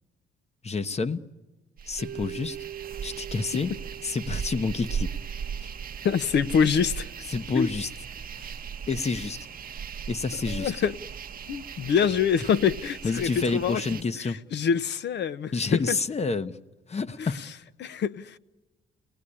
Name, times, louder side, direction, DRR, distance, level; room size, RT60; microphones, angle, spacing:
voice 1, 0.6-1.2 1.9-2.6 3.0-3.7 4.0-5.1 7.3-7.9 8.4-8.6 8.9-9.5 10.1-10.7 13.0-14.4 15.5-16.6 16.9-17.4, left 4 dB, 35° left, 1.0 m, -28 dB
sound 1, 1.8-14.0, right 7 dB, 45° right, 0.9 m, -37 dB
Mallet percussion, 2.0-6.1, right 11 dB, 80° right, 1.0 m, -43 dB
voice 2, 6.0-7.1 7.5-7.7 10.5-11.0 11.5-15.5 15.9-16.0 17.2-17.3 17.8-18.4, left 7 dB, 60° left, 0.8 m, -25 dB
29.0 x 19.0 x 10.0 m
cardioid pair, 90°, 20 cm